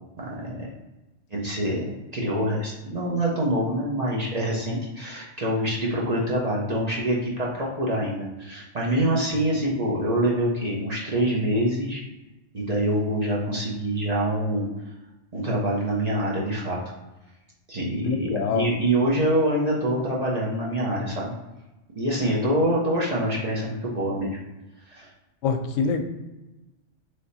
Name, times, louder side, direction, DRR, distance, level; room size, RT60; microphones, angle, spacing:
voice 1, 0.2-0.7 1.3-1.9 2.1-12.0 12.5-14.7 15.3-16.8 17.7-21.3 22.0-24.4 24.9-25.1, right 1 dB, 40° right, -4 dB, 0.7 m, -25 dB
voice 2, 18.0-18.7 25.4-26.0, left 5 dB, 85° left, 6 dB, 0.9 m, -25 dB
3.3 x 2.9 x 4.1 m, 1.0 s
omnidirectional pair, 1.3 m